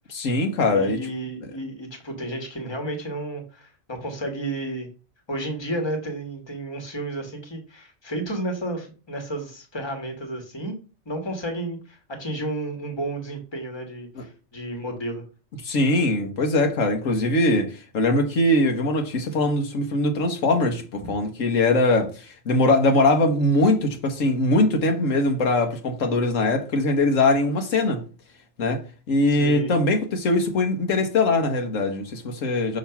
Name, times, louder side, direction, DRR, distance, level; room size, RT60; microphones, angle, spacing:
voice 1, 0.1-1.0 14.2-14.3 15.6-28.0 28.6-28.8 29.1-32.8, left 2 dB, 90° left, 1.6 m, -21 dB
voice 2, 0.7-4.9 5.3-10.8 11.0-15.2 21.0-21.1 29.4-29.7, right 1 dB, 20° left, 1.5 m, -32 dB
6.4 x 3.1 x 5.7 m
omnidirectional pair, 1.3 m